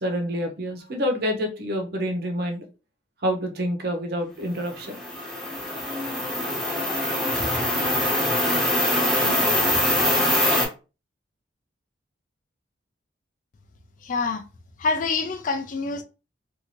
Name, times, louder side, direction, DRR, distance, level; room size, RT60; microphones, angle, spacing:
voice 1, 0.0-2.6 3.2-5.0, equal, 50° right, 0.7 m, -27 dB
sound 1, 4.7-10.7, left 1 dB, ahead, 0.7 m, -23 dB
voice 2, 14.0-14.4 14.8-16.0, left 4 dB, 40° left, 0.3 m, -26 dB
2.7 x 2.5 x 2.8 m
head